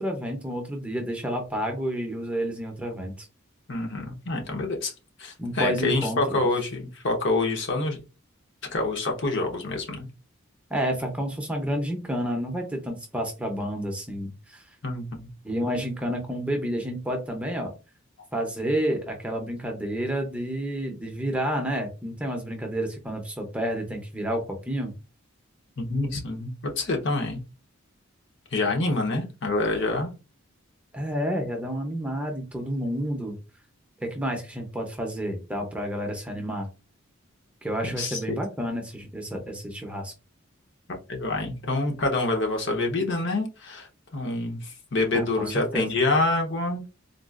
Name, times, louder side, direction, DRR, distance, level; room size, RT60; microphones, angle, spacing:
voice 1, 0.0-3.3 5.4-6.4 10.7-14.6 15.4-17.7 18.3-24.4 24.7-24.9 30.9-33.4 34.0-36.7 37.6-40.1 45.1-45.3 45.7-45.9, equal, 5° right, 2 dB, 0.6 m, -30 dB
voice 2, 3.7-4.9 5.2-8.0 8.7-10.1 14.8-15.0 25.8-27.4 28.5-30.1 37.8-38.4 41.1-46.9, left 2 dB, 60° left, 2 dB, 0.8 m, -27 dB
3.8 x 2.4 x 2.4 m, 0.30 s
head